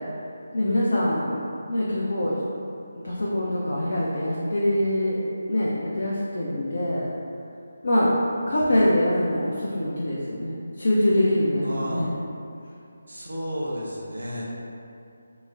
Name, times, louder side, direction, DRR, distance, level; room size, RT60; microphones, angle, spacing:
voice 1, 0.5-1.4 1.7-2.4 3.0-5.2 5.5-7.1 7.8-8.2 8.5-12.1, left 1 dB, 55° left, -6 dB, 0.5 m, -24 dB
voice 2, 11.6-12.1 13.1-14.5, equal, 70° right, -5 dB, 0.7 m, -32 dB
3.0 x 2.1 x 3.6 m, 2.6 s
figure-of-eight pair, 155°, 0 cm